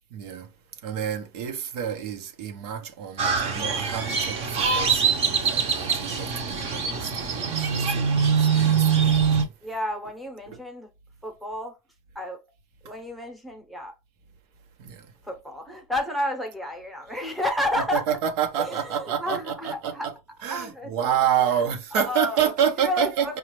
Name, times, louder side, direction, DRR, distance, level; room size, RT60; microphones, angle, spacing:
voice 1, 0.1-0.5 0.8-9.5 10.5-10.6 14.8-15.1 17.8-20.1 20.4-23.4, right 8 dB, 85° right, 0.9 m, -28 dB
Crow, 3.2-9.4, right 6 dB, 35° right, 0.7 m, -23 dB
voice 2, 9.6-10.9 11.2-11.8 12.1-12.4 12.8-13.9 15.2-18.2 18.6-20.1 20.4-21.1 21.9-22.5 22.8-23.4, left 1 dB, ahead, 0.7 m, -31 dB
5.1 x 2.3 x 3.1 m
supercardioid pair, 150°, 19 cm